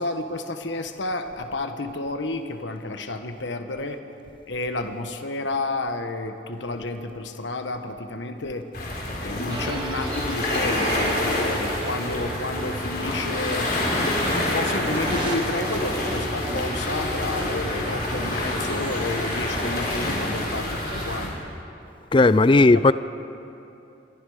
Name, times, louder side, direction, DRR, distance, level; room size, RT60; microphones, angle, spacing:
voice 1, 0.0-4.0 4.5-8.7 9.2-13.7 14.2-21.4 22.1-22.9, left 2 dB, 75° left, 1.3 m, -31 dB
sound 1, 8.7-21.3, left 1 dB, 50° left, 4.8 m, -27 dB
sound 2, 9.5-21.2, right 1 dB, 25° right, 2.3 m, -34 dB
voice 2, 22.1-22.9, left 2 dB, 25° left, 0.4 m, -15 dB
26.5 x 22.5 x 5.0 m
head